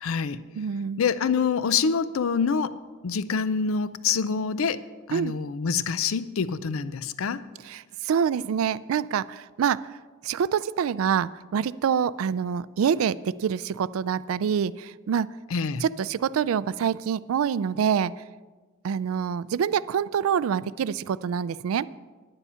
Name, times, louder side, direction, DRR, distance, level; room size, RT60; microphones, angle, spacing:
voice 1, 0.0-0.4 1.0-2.7 3.0-4.8 5.1-7.4 15.5-15.8, left 6 dB, 75° left, 15 dB, 0.5 m, -26 dB
voice 2, 0.6-1.0 5.1-5.3 7.7-9.9 10.2-15.3 15.8-18.1 18.8-21.9, right 7 dB, 80° right, 18 dB, 0.3 m, -26 dB
9.9 x 9.6 x 5.6 m, 1.4 s
head